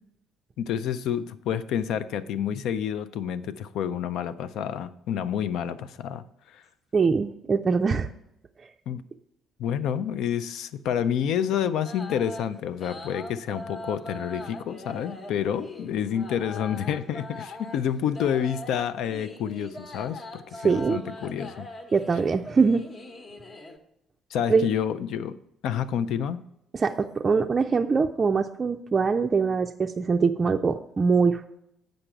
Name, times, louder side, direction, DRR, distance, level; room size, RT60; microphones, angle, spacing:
voice 1, 0.6-6.2 6.5-6.6 8.9-9.0 9.6-21.7 24.3-25.3 25.6-26.4, left 9 dB, 60° left, 14 dB, 0.4 m, -29 dB
voice 2, 6.9-8.1 20.6-21.0 21.9-22.8 24.5-24.7 26.7-31.5, right 5 dB, 35° right, 4 dB, 0.4 m, -23 dB
sound 1, 11.8-23.8, left 2 dB, 40° left, 1.0 m, -41 dB
8.7 x 5.2 x 5.7 m, 0.82 s
figure-of-eight pair, 45°, 0 cm